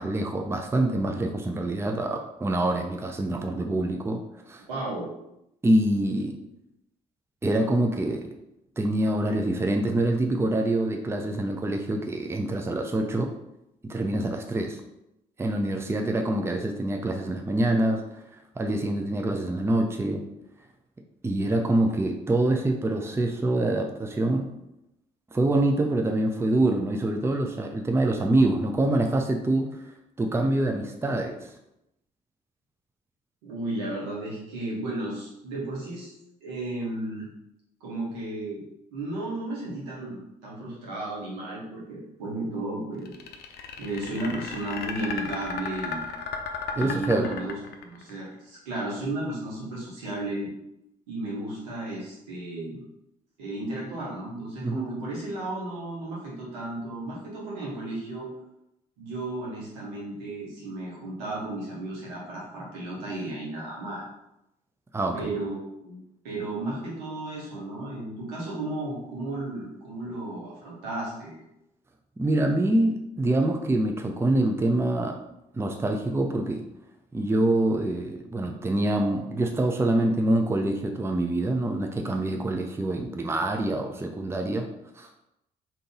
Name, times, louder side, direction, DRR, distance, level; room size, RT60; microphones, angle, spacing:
voice 1, 0.0-4.2 4.5-4.6 5.6-6.3 7.4-8.3 8.8-13.3 13.8-14.8 15.4-18.0 18.6-20.2 21.2-24.5 25.3-29.7 30.2-31.5 46.8-47.3 54.6-54.9 64.9-65.3 72.2-75.2 75.5-76.6 77.1-84.7 85.0-85.1, right 1 dB, 10° right, 3 dB, 0.6 m, -25 dB
voice 2, 4.7-5.1 33.4-36.1 36.4-37.3 37.8-38.6 38.9-43.1 43.8-46.0 46.7-50.5 51.1-52.8 53.4-58.3 59.0-64.0 65.1-66.0 66.2-71.4, right 2 dB, 75° right, -5 dB, 1.2 m, -34 dB
sound 1, 43.1-48.1, left 5 dB, 55° left, 0.6 m, -34 dB
3.8 x 2.8 x 3.6 m, 0.84 s
figure-of-eight pair, 40°, 21 cm